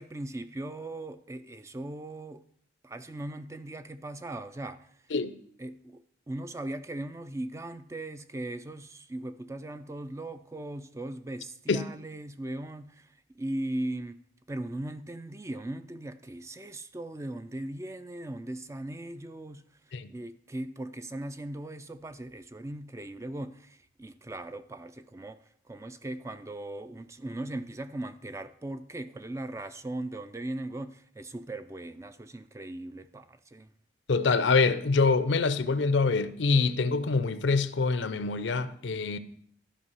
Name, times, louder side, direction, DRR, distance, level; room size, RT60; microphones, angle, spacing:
voice 1, 0.0-2.4 2.8-4.9 5.6-6.0 6.3-13.1 13.4-14.2 14.5-19.6 20.1-25.4 25.7-33.7, right 1 dB, 15° right, 0.3 m, -38 dB
voice 2, 34.1-39.2, left 4 dB, 80° left, 0.6 m, -25 dB
12.5 x 5.2 x 5.6 m
head